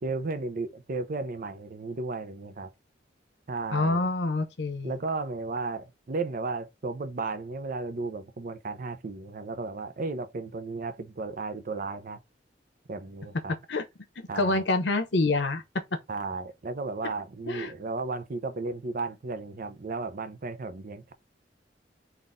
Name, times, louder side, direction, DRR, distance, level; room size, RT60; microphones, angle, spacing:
voice 1, 0.0-2.7 3.5-4.1 4.8-12.2 12.9-13.5 14.3-14.6 16.1-21.1, right 3 dB, 50° right, 0.6 m, -34 dB
voice 2, 3.7-5.0 13.7-13.8 14.2-15.6 17.5-17.7, left 2 dB, 80° left, 0.9 m, -27 dB
4.0 x 2.5 x 3.5 m
head